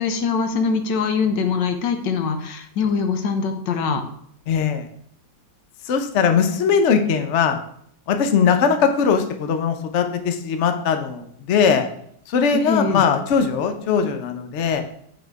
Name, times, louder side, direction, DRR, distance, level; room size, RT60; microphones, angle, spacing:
voice 1, 0.0-4.0 12.5-13.0, left 5 dB, 75° left, 7 dB, 1.5 m, -23 dB
voice 2, 4.5-4.9 5.8-7.6 8.1-11.8 12.3-14.8, left 6 dB, 60° left, 7 dB, 0.8 m, -20 dB
7.8 x 4.3 x 4.6 m, 0.67 s
omnidirectional pair, 1.9 m